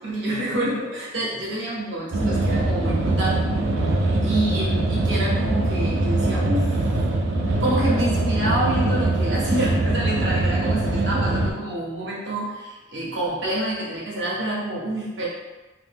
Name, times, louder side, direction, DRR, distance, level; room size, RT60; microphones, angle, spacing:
voice 1, 0.0-3.5 4.2-7.0 7.2-7.3 7.6-15.3, right 1 dB, 65° right, -5 dB, 0.9 m, -27 dB
sound 1, 2.1-11.5, right 2 dB, 80° right, 0.5 m, -22 dB
3.1 x 2.1 x 3.4 m, 1.2 s
head